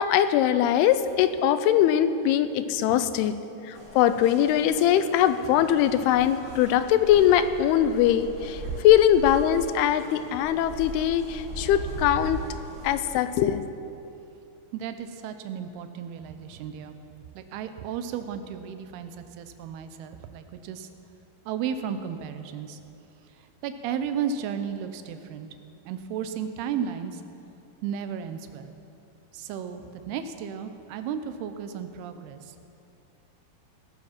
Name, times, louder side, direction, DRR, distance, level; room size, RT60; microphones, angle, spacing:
voice 1, 0.0-3.3 3.6-12.4 12.8-13.6, left 10 dB, 90° left, 11 dB, 2.6 m, -22 dB
sound 1, 3.7-13.6, right 1 dB, 35° right, 4.3 m, -39 dB
voice 2, 14.7-17.0 17.4-20.9 21.5-22.8 23.4-25.5 25.9-27.2 27.8-28.7 29.3-32.7, right 8 dB, 85° right, 9 dB, 2.7 m, -34 dB
19.0 x 7.2 x 5.9 m, 2.7 s
omnidirectional pair, 4.5 m